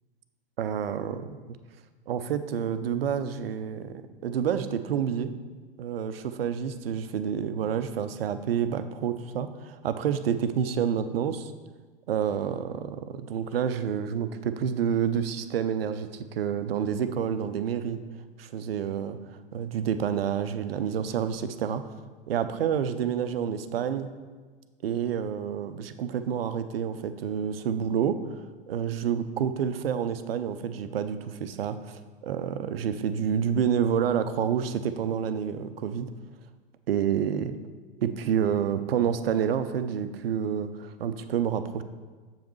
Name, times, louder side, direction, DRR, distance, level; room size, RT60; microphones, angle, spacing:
voice 1, 0.6-1.4 2.1-5.3 5.8-11.5 12.1-18.0 18.4-19.2 19.5-21.8 22.3-24.1 24.8-36.1 36.9-37.5 38.0-41.8, right 8 dB, 80° right, 11 dB, 0.5 m, -28 dB
7.0 x 5.0 x 3.1 m, 1.4 s
hypercardioid pair, 100°, 29 cm